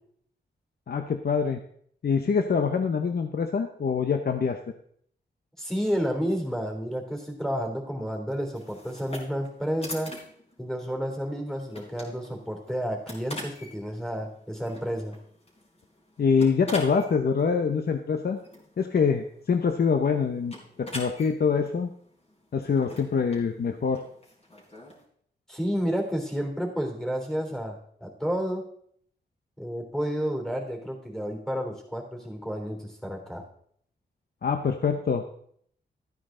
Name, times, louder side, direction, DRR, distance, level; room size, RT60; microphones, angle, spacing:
voice 1, 0.9-1.6 2.0-4.6 16.2-18.4 18.8-21.9 22.5-24.0 34.4-35.2, left 5 dB, 60° left, 6 dB, 0.9 m, -25 dB
voice 2, 5.6-10.1 10.6-15.1 25.5-28.6 29.6-33.4, equal, 5° left, 1 dB, 3.3 m, -31 dB
sound 1, 8.5-25.0, left 1 dB, 35° left, 3.9 m, -45 dB
13.0 x 9.3 x 3.8 m, 0.64 s
wide cardioid pair, 90°, 18 cm